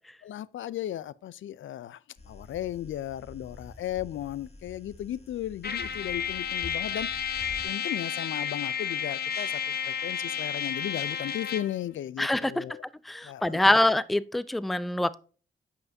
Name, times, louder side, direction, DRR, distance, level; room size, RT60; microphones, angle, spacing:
voice 1, 0.2-2.0 2.3-7.1 7.6-12.8 13.2-13.8, left 12 dB, 70° left, 0.4 m, -35 dB
sound 1, 2.2-7.6, left 2 dB, 30° left, 1.5 m, -47 dB
Trumpet, 5.6-11.8, left 8 dB, 50° left, 0.9 m, -32 dB
voice 2, 12.2-12.6 13.1-15.2, left 1 dB, ahead, 0.4 m, -24 dB
9.2 x 5.7 x 2.6 m
cardioid pair, 65°, 21 cm